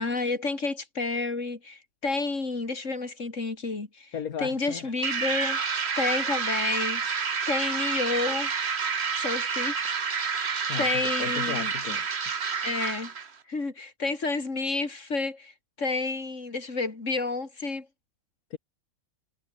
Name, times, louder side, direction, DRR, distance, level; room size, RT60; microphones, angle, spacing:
voice 1, 0.0-5.6 6.0-7.0 7.5-8.5 9.2-11.7 12.6-13.1 13.5-17.9, left 3 dB, 55° left, 3.7 m, -30 dB
voice 2, 4.1-4.9 10.7-12.6 18.5-18.6, left 8 dB, 75° left, 1.8 m, -36 dB
sound 1, 5.0-13.3, right 5 dB, 45° right, 1.7 m, -29 dB
omnidirectional pair, 1.5 m